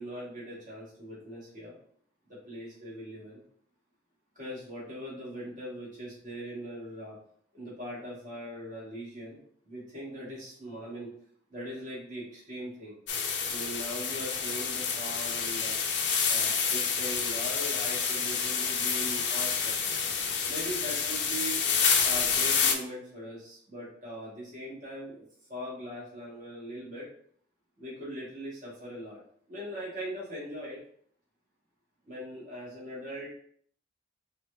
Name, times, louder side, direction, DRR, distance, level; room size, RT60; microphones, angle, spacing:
voice 1, 0.0-1.7 2.3-3.4 4.4-7.1 7.5-9.4 9.7-11.1 11.5-13.0 13.5-15.7 16.3-19.7 20.5-21.6 22.0-25.2 25.5-27.1 27.8-29.2 29.5-30.8 32.1-33.3, equal, 40° right, -6 dB, 1.8 m, -40 dB
sound 1, 13.1-22.7, left 6 dB, 60° left, 0.6 m, -28 dB
4.6 x 2.6 x 3.2 m, 0.62 s
head